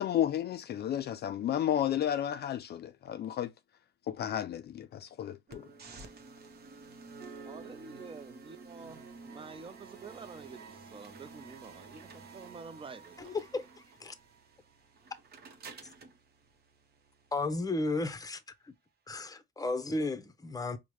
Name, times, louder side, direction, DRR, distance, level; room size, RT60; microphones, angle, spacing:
voice 1, 0.0-3.5 4.1-5.7, left 10 dB, 55° left, 0.4 m, -32 dB
sound 1, 5.5-17.5, right 4 dB, 50° right, 0.9 m, -51 dB
voice 2, 7.4-13.3, right 4 dB, 25° right, 0.5 m, -48 dB
voice 3, 13.2-13.6 14.0-14.1 17.3-18.4 19.1-20.8, left 2 dB, 20° left, 0.7 m, -33 dB
4.6 x 2.1 x 3.0 m
cardioid pair, 90°, 20 cm